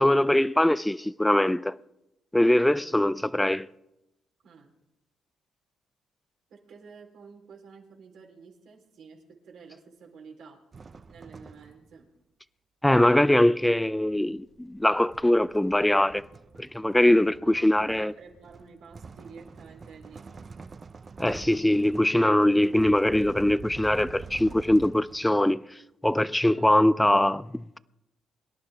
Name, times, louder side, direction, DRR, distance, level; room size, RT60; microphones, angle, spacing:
voice 1, 0.0-1.8 2.3-3.7 12.8-16.3 16.6-18.1 21.2-27.8, left 1 dB, 5° left, 0.4 m, -22 dB
voice 2, 6.5-10.6 11.1-12.1 17.4-20.3 26.5-26.8, right 5 dB, 75° right, 3.6 m, -50 dB
sound 1, 10.7-12.0 13.2-25.5, right 5 dB, 35° right, 0.6 m, -46 dB
23.5 x 11.0 x 3.5 m
cardioid pair, 90°, 0 cm